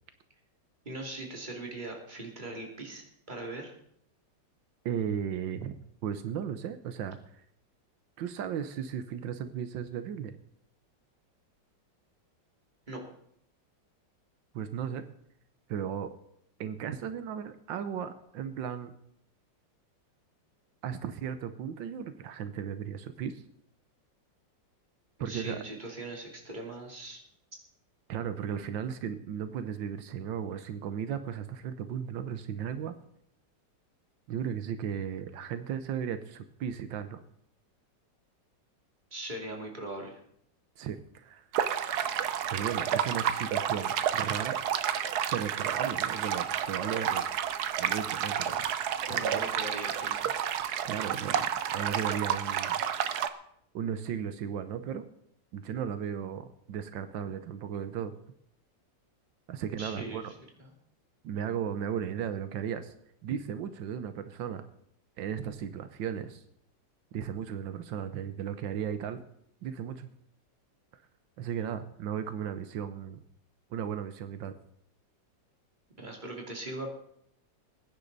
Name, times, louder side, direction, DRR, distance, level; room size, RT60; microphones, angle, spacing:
voice 1, 0.8-3.7 12.9-13.0 25.2-27.2 39.1-40.2 49.1-50.3 59.8-60.7 76.0-76.9, right 2 dB, 25° right, 0 dB, 2.8 m, -40 dB
voice 2, 4.8-5.7 6.0-7.2 8.2-10.3 14.5-15.0 15.7-16.1 16.6-18.9 20.8-23.4 25.2-25.6 28.1-32.9 34.3-37.2 40.8-41.4 42.5-44.6 45.3-47.3 47.8-48.6 49.1-49.5 50.8-52.8 53.7-55.0 55.5-58.1 59.5-60.3 61.2-62.9 63.2-64.6 65.2-66.4 67.1-69.2 69.6-70.1 71.4-73.2 73.7-74.5, right 8 dB, 85° right, 10 dB, 1.6 m, -35 dB
sound 1, 41.5-53.3, right 9 dB, 65° right, 1.2 m, -30 dB
21.0 x 10.0 x 4.0 m, 0.71 s
omnidirectional pair, 2.0 m